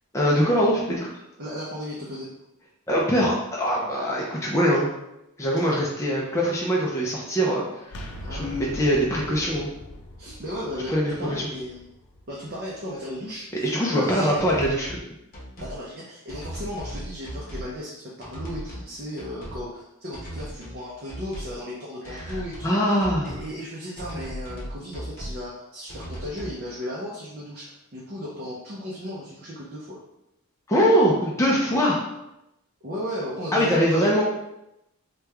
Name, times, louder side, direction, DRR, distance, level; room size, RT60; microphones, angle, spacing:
voice 1, 0.1-1.1 2.9-4.9 5.4-7.6 8.3-9.7 10.9-11.5 13.6-15.0 22.1-22.4 22.6-23.4 30.7-32.0 33.5-34.2, equal, 15° left, -4 dB, 0.4 m, -22 dB
voice 2, 1.4-2.3 5.6-5.7 8.2-9.0 10.2-11.8 12.3-13.6 13.9-14.5 15.6-22.8 23.2-30.0 32.8-34.2, equal, 45° right, -5 dB, 0.5 m, -35 dB
sound 1, 7.9-13.6, equal, 70° left, 0.5 m, -42 dB
sound 2, 14.4-15.0 15.3-15.8 16.3-17.7 18.2-18.9 19.2-19.6 20.1-20.8 21.1-21.6 22.0-22.7 23.0-23.5 24.0-25.4 25.9-26.6, right 1 dB, 40° left, 0.9 m, -37 dB
2.9 x 2.2 x 3.4 m, 0.88 s
head